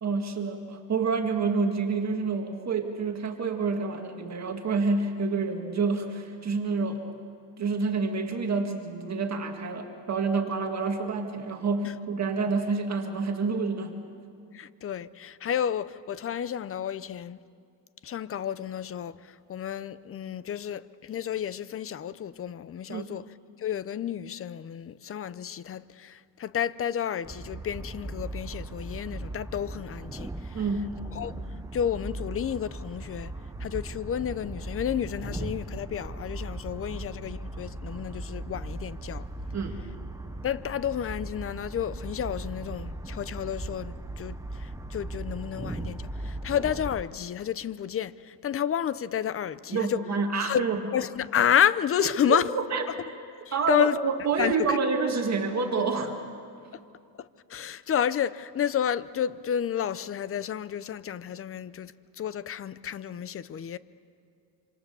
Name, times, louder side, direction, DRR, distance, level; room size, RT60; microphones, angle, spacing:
voice 1, 0.0-7.0 7.6-14.0 22.9-23.1 30.5-31.0 39.5-39.8 49.7-50.8 52.0-52.8 53.5-56.2, right 4 dB, 35° right, 1.9 m, -28 dB
voice 2, 14.5-17.4 18.0-23.2 23.6-30.6 31.1-31.3 31.7-33.3 33.6-39.3 40.4-50.0 50.4-50.6 50.9-52.5 53.5-54.0 54.4-54.8 57.2-63.8, left 9 dB, 30° left, 0.6 m, -30 dB
sound 1, 27.2-47.0, right 2 dB, 10° right, 0.6 m, -38 dB
26.5 x 26.5 x 6.9 m
cardioid pair, 140°, 44 cm